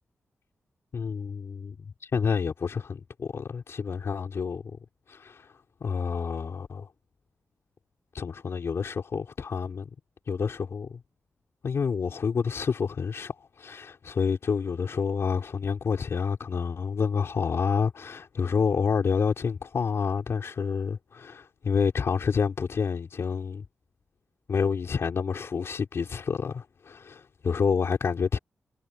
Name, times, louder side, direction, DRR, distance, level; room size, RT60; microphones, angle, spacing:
voice 1, 0.9-4.6 5.1-5.5 5.8-6.9 8.1-9.9 10.3-11.0 11.6-23.6 24.5-28.4, left 6 dB, 70° left, 4.4 m, -28 dB
cardioid pair, 60°, 5 cm